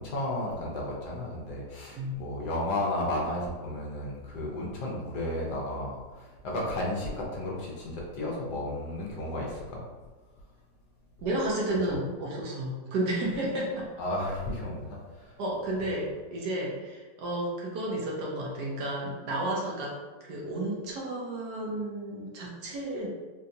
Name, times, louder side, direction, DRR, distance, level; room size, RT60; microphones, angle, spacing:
voice 1, 0.0-9.8 10.4-10.5 11.8-11.9 14.0-15.4 15.8-15.9, left 1 dB, 70° left, -3 dB, 1.2 m, -33 dB
voice 2, 11.2-13.8 15.4-19.9 20.3-23.1, right 1 dB, 70° right, -3 dB, 1.2 m, -32 dB
3.9 x 2.3 x 2.6 m, 1.3 s
omnidirectional pair, 1.9 m